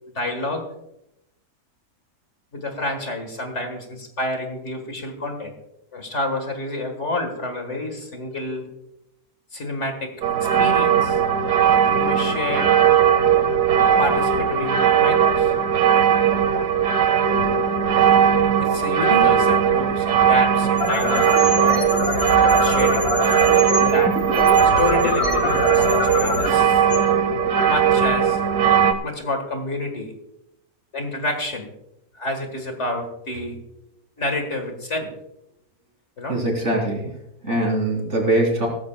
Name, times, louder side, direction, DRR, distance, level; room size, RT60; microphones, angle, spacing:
voice 1, 0.2-0.6 2.5-5.5 5.9-8.7 9.5-10.1 10.6-11.2 11.9-13.2 14.0-15.5 18.6-21.9 22.3-23.1 23.9-24.1 24.6-26.8 27.7-28.4 29.0-30.1 30.9-31.7 32.1-33.6 34.2-35.1 36.2-36.4, left 2 dB, 50° left, 5 dB, 2.0 m, -28 dB
sound 1, 10.2-28.9, right 8 dB, 85° right, 1.4 m, -18 dB
sound 2, 20.6-27.7, left 3 dB, 70° left, 2.6 m, -25 dB
voice 2, 36.3-37.1 37.4-38.7, right 1 dB, 45° right, 0 dB, 3.6 m, -22 dB
16.5 x 14.5 x 2.3 m, 0.82 s
omnidirectional pair, 1.7 m